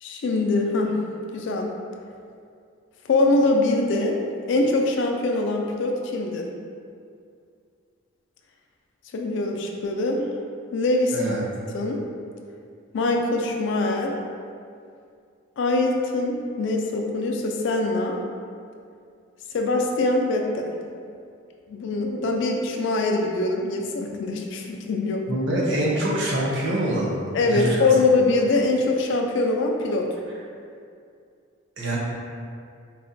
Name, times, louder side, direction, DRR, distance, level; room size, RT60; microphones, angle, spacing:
voice 1, 0.0-1.0 1.3-1.7 3.1-4.2 4.5-6.5 9.1-10.3 10.7-11.2 11.7-12.0 12.9-14.2 15.6-18.2 19.5-20.7 21.7-25.2 27.3-30.1, left 2 dB, 55° left, 2 dB, 0.3 m, -23 dB
voice 2, 11.1-11.4 25.3-27.9 31.8-32.0, right 1 dB, 55° right, -4 dB, 0.6 m, -25 dB
3.8 x 2.1 x 2.6 m, 2.3 s
head